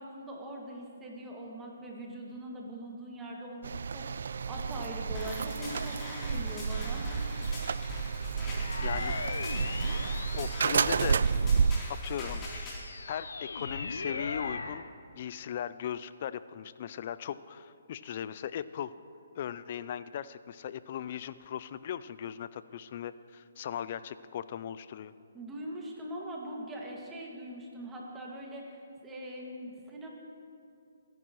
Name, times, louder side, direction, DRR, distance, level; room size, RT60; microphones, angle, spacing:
voice 1, 0.0-7.2 7.5-7.8 25.3-30.1, right 1 dB, 10° right, -2 dB, 2.0 m, -42 dB
sound 1, 3.6-11.8, right 5 dB, 70° right, 0.3 m, -30 dB
sound 2, 5.1-12.8, left 1 dB, 25° left, 3.3 m, -41 dB
sound 3, 8.5-11.5 12.0-14.9, left 3 dB, 80° left, 0.8 m, -39 dB
voice 2, 8.8-9.1 10.3-11.2 11.9-12.4 13.1-14.9 15.1-18.9 19.3-25.1, left 9 dB, 45° left, 15 dB, 0.4 m, -38 dB
24.5 x 10.5 x 3.1 m, 2.5 s
hypercardioid pair, 145°, 0 cm